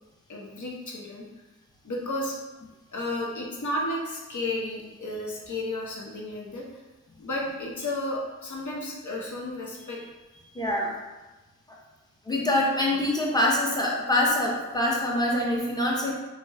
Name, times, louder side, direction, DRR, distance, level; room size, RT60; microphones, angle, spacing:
voice 1, 0.3-1.2 1.8-2.4 2.9-6.8 7.2-10.6, left 1 dB, 60° left, -2 dB, 0.8 m, -33 dB
voice 2, 10.5-10.9 11.7-11.8 12.2-16.1, left 1 dB, 10° left, -3 dB, 0.8 m, -25 dB
3.0 x 2.2 x 3.4 m, 1.1 s
cardioid pair, 40°, 33 cm